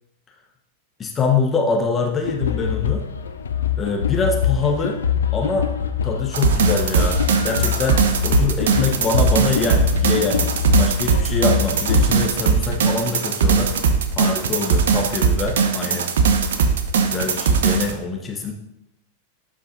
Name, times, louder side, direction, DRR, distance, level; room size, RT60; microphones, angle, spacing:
voice 1, 1.0-3.1 3.8-5.0 5.3-5.7 6.0-13.7 14.2-16.1 17.0-18.5, left 4 dB, 20° left, 2 dB, 0.9 m, -24 dB
sound 1, 2.2-12.3, left 8 dB, 70° left, 0.5 m, -24 dB
sound 2, 6.3-17.9, right 5 dB, 60° right, 0.7 m, -19 dB
11.5 x 5.0 x 2.6 m, 0.82 s
figure-of-eight pair, 90°, 0 cm